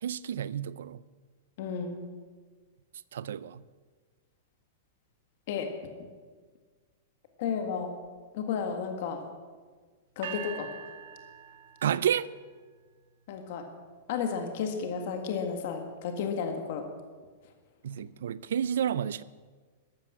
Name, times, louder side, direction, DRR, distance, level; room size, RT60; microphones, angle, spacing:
voice 1, 0.0-1.0 3.1-3.6 11.8-12.3 17.8-19.2, right 9 dB, 75° right, 19 dB, 0.5 m, -30 dB
voice 2, 1.6-2.0 5.5-5.7 7.4-7.9 8.3-9.2 10.1-10.7 13.3-13.6 14.1-16.8, left 6 dB, 45° left, 5 dB, 1.8 m, -32 dB
sound 1, 10.2-12.3, right 8 dB, 60° right, 2.0 m, -43 dB
13.5 x 12.5 x 7.4 m, 1.5 s
supercardioid pair, 175°, 0 cm